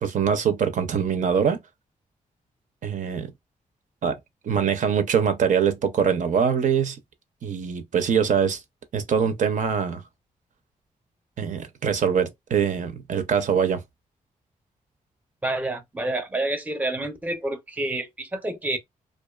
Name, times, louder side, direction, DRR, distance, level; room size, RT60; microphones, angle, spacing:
voice 1, 0.0-1.6 2.8-3.3 4.0-4.2 4.4-7.0 7.4-8.6 8.9-10.0 11.4-13.8, right 7 dB, 60° right, 0.5 m, -23 dB
voice 2, 15.4-18.8, right 2 dB, 10° right, 0.5 m, -28 dB
2.4 x 2.3 x 2.3 m
cardioid pair, 85°, 15 cm